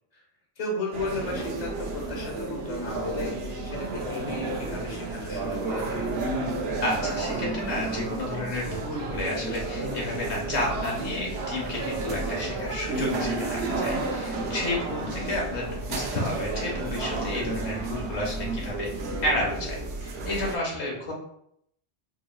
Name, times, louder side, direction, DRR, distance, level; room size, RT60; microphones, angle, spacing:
voice 1, 0.6-6.1 15.0-15.3, left 2 dB, 40° left, -1 dB, 1.1 m, -35 dB
sound 1, 0.9-20.6, right 3 dB, 70° right, 0.8 m, -32 dB
Singing, 2.7-18.7, equal, 10° right, 0.6 m, -43 dB
voice 2, 6.8-18.9 19.2-21.1, left 1 dB, 90° left, -1 dB, 1.3 m, -31 dB
4.6 x 3.0 x 2.2 m, 0.73 s
omnidirectional pair, 1.1 m